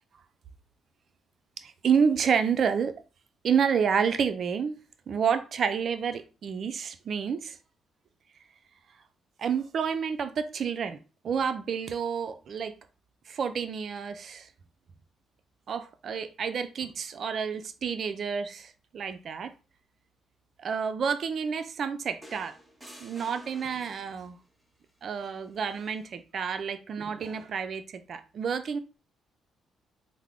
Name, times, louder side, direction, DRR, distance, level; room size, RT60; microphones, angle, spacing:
voice 1, 1.6-2.9 3.4-4.8 5.1-7.6 9.4-11.0 11.2-12.7 13.3-14.5 15.7-19.5 20.6-22.5 23.0-24.4 25.0-28.8, right 6 dB, 55° right, 0.4 m, -29 dB
sound 1, 22.2-24.4 25.8-26.0, equal, 10° right, 0.8 m, -50 dB
3.5 x 2.0 x 3.5 m
cardioid pair, 90°, 0 cm